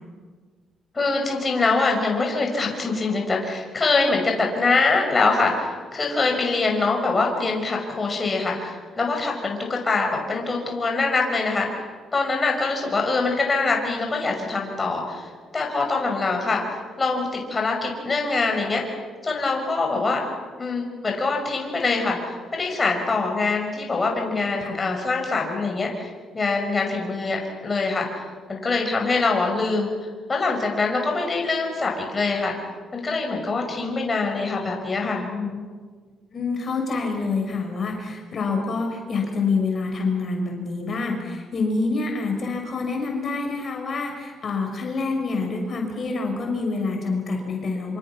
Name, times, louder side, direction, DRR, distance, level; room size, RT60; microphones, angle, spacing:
voice 1, 0.9-15.3 15.5-18.8 19.2-20.2 20.6-26.1 26.3-28.2 28.5-29.9 30.3-32.5 32.9-35.6, left 3 dB, 30° left, 1 dB, 5.8 m, -24 dB
voice 2, 36.3-48.0, left 3 dB, 50° left, 2 dB, 5.6 m, -27 dB
26.5 x 26.0 x 6.1 m, 1.5 s
cardioid pair, 90°, 0 cm